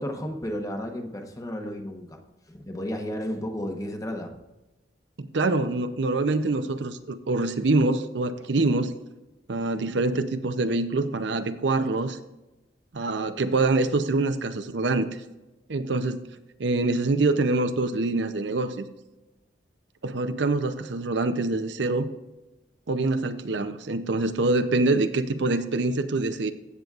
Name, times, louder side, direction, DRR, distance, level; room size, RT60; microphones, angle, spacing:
voice 1, 0.0-2.2 2.5-4.4, equal, 20° left, 4 dB, 1.0 m, -33 dB
voice 2, 5.2-8.9 9.5-12.2 12.9-15.1 15.7-16.3 16.6-18.9 20.0-22.1 22.9-26.5, right 2 dB, 65° right, 10 dB, 0.6 m, -25 dB
15.5 x 6.9 x 2.4 m, 1.0 s
head